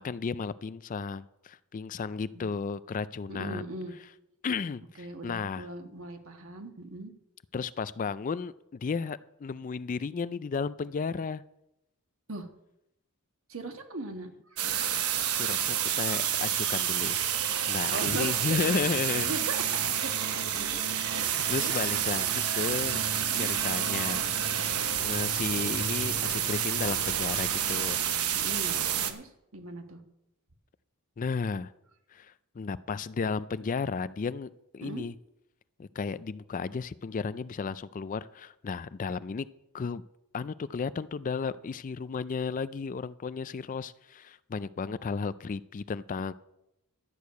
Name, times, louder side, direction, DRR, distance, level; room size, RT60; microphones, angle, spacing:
voice 1, 0.0-3.7 4.4-5.7 7.5-11.4 15.3-19.3 21.5-23.0 23.3-24.2 25.0-28.0 31.2-31.7 32.1-35.1 35.8-39.5 39.7-40.0 40.3-46.3, left 5 dB, 35° left, 16 dB, 0.3 m, -34 dB
voice 2, 3.3-3.9 5.0-7.1 12.3-12.5 13.5-14.8 17.9-19.6 20.0-21.7 23.2-23.5 28.3-30.0 34.8-35.0, right 2 dB, 65° right, 5 dB, 1.5 m, -40 dB
sound 1, 14.6-29.1, right 9 dB, 85° right, 1.1 m, -29 dB
12.5 x 6.6 x 8.2 m, 0.85 s
head